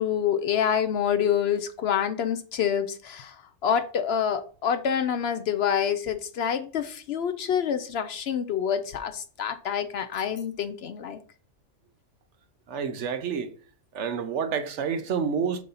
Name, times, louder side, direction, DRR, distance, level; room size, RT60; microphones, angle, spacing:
voice 1, 0.0-3.3 3.6-11.2, left 8 dB, 65° left, 0.7 m, -27 dB
voice 2, 12.7-13.5 13.9-15.6, right 6 dB, 70° right, 1.0 m, -28 dB
7.5 x 2.6 x 5.6 m
omnidirectional pair, 1.3 m